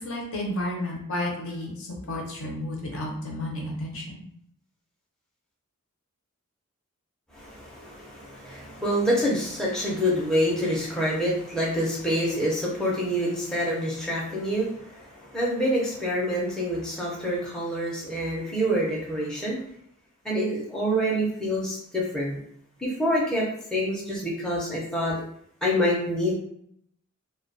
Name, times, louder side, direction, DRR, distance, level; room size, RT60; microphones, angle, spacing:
voice 1, 0.0-4.2, left 1 dB, 65° left, -1 dB, 0.7 m, -32 dB
voice 2, 7.3-19.6 20.2-22.4 22.8-23.4 23.7-25.1 25.6-26.3, equal, 5° left, -6 dB, 0.5 m, -26 dB
2.2 x 2.2 x 2.5 m, 0.69 s
head